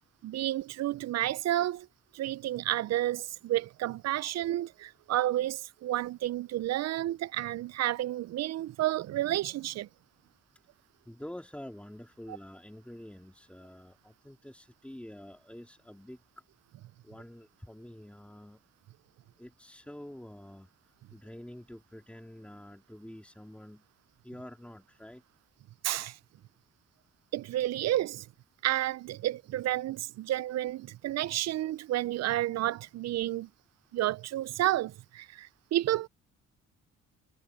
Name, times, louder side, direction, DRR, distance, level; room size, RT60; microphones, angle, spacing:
voice 1, 0.2-1.9 2.1-9.9 25.8-26.2 27.3-28.3 28.6-33.5 33.9-36.1, right 14 dB, 60° right, 0.5 m, -31 dB
voice 2, 11.1-16.2 17.0-18.6 19.4-20.7 21.1-23.8 24.2-25.2, left 1 dB, 5° left, 3.6 m, -47 dB
cardioid pair, 90°, 30 cm